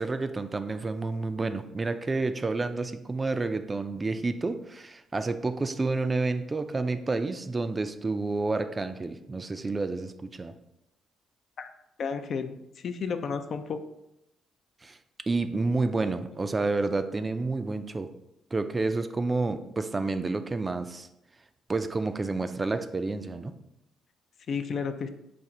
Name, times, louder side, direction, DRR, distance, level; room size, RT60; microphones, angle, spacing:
voice 1, 0.0-10.5 14.8-15.0 15.3-18.1 18.5-21.1 21.7-23.5, right 3 dB, 25° right, 9 dB, 0.4 m, -29 dB
voice 2, 12.0-13.8 24.5-25.1, left 5 dB, 55° left, 8 dB, 0.4 m, -32 dB
4.2 x 2.5 x 4.8 m, 0.84 s
cardioid pair, 90°, 0 cm